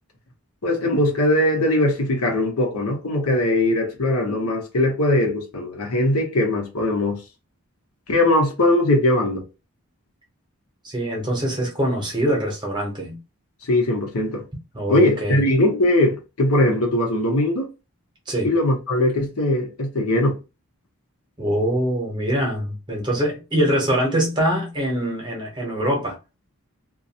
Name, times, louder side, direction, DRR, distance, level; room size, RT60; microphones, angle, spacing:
voice 1, 0.6-7.2 8.1-9.4 13.6-14.4 14.9-17.7 18.4-20.4, left 1 dB, 75° left, 0.9 m, -20 dB
voice 2, 10.8-13.2 14.7-15.4 18.3-18.5 21.4-26.2, equal, 20° right, 0.8 m, -23 dB
2.5 x 2.3 x 2.7 m
head